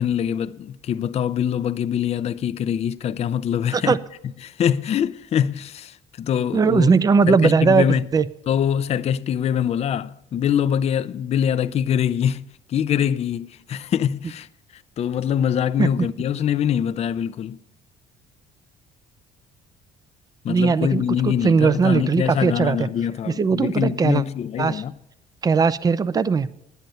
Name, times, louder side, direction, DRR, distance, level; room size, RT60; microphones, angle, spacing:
voice 1, 0.0-4.0 4.4-6.9 7.3-8.1 8.5-12.4 12.7-14.5 14.7-17.6 20.4-24.9, left 9 dB, 40° left, 0.4 m, -24 dB
voice 2, 6.5-8.2 15.8-16.1 20.5-22.9 23.3-24.2 24.6-24.8 25.4-26.5, right 5 dB, 20° right, 0.4 m, -19 dB
10.5 x 9.2 x 5.4 m
cardioid pair, 110°, 17 cm